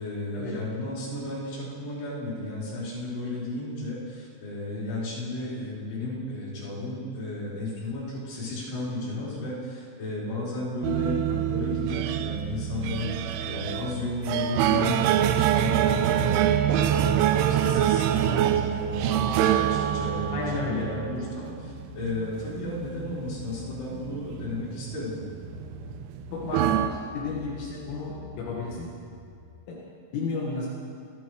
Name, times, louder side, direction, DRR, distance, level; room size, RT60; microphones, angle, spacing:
voice 1, 0.0-25.2, left 2 dB, 45° left, -7 dB, 5.4 m, -34 dB
sound 1, 10.8-26.9, right 10 dB, 85° right, 2.9 m, -25 dB
voice 2, 20.3-20.9 26.3-28.9 29.7-29.8 30.1-30.7, left 4 dB, 75° left, -4 dB, 4.2 m, -32 dB
sound 2, 21.6-29.3, left 5 dB, 60° left, 4.1 m, -46 dB
26.0 x 11.0 x 4.7 m, 2.3 s
omnidirectional pair, 5.9 m